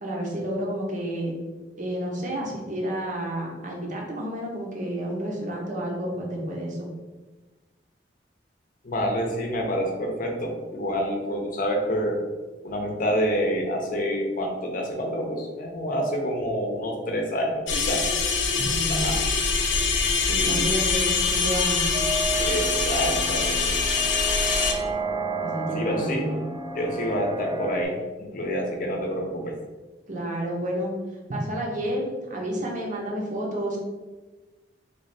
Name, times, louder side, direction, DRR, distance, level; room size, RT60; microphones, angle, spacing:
voice 1, 0.0-1.3 1.8-6.9 18.5-19.2 20.3-21.9 25.4-26.4 30.1-30.9 31.3-33.8, right 1 dB, 45° right, -1 dB, 0.8 m, -30 dB
voice 2, 8.8-12.2 12.6-18.1 18.9-19.2 20.4-20.7 22.4-23.6 25.8-26.3 26.7-29.6, equal, 50° left, 1 dB, 0.7 m, -27 dB
sound 1, 17.7-24.7, left 5 dB, 90° left, 0.6 m, -24 dB
sound 2, 21.9-27.8, right 3 dB, 25° right, 0.4 m, -32 dB
3.3 x 2.4 x 4.1 m, 1.2 s
head